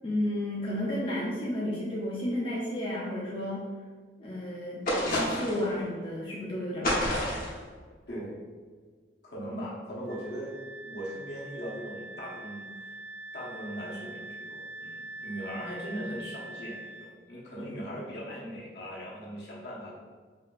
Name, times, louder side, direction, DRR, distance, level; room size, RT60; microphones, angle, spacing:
voice 1, 0.0-3.7 4.2-7.5, left 1 dB, 30° left, -5 dB, 0.5 m, -32 dB
sound 1, 4.9-5.7 6.8-7.6, left 1 dB, 50° left, 0.9 m, -28 dB
voice 2, 8.1-8.4 9.2-12.7 13.3-20.0, equal, 70° left, -5 dB, 1.1 m, -39 dB
Wind instrument woodwind instrument, 10.1-17.1, right 2 dB, 85° right, 0.4 m, -43 dB
5.0 x 2.8 x 2.4 m, 1.5 s
head